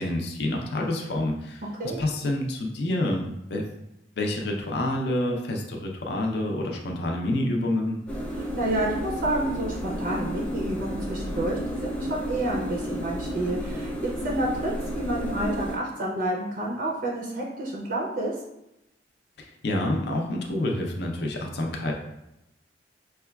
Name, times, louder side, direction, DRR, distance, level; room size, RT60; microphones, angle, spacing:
voice 1, 0.0-1.6 2.0-3.6 4.2-8.0 19.4-21.9, left 1 dB, 60° left, 1 dB, 0.5 m, -28 dB
sound 1, 8.1-15.8, equal, 5° left, 0.4 m, -32 dB
voice 2, 8.4-18.3, right 1 dB, 50° right, -2 dB, 0.5 m, -29 dB
4.8 x 2.2 x 2.2 m, 0.89 s
head